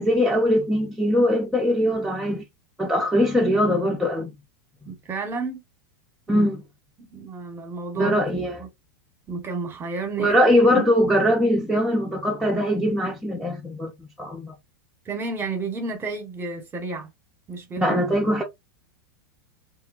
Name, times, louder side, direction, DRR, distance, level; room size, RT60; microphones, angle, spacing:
voice 1, 0.0-2.4 2.8-4.3 6.3-6.6 7.9-8.6 10.2-14.5 17.8-18.4, equal, ahead, 0.6 m, -21 dB
voice 2, 4.9-5.6 6.3-6.5 7.0-8.2 8.6-8.7 9.3-10.4 10.6-10.8 15.1-17.1 17.5-17.9, right 3 dB, 20° right, 1.1 m, -31 dB
2.9 x 2.2 x 2.4 m
hypercardioid pair, 105°, 11 cm